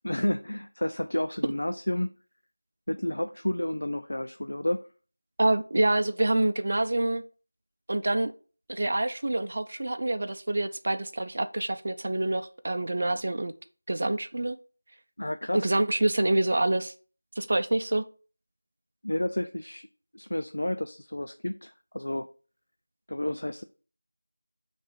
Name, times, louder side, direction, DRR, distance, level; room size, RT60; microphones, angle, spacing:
voice 1, 0.0-2.1 2.9-4.9 15.2-15.7 19.0-19.9 20.1-22.3 23.1-23.6, left 1 dB, 75° left, 8 dB, 0.5 m, -31 dB
voice 2, 5.4-7.2 7.9-8.3 8.7-13.5 13.9-14.6 15.5-16.9 17.4-18.0, right 1 dB, 50° right, 10 dB, 0.5 m, -26 dB
6.4 x 3.4 x 5.4 m, 0.37 s
figure-of-eight pair, 170°, 0 cm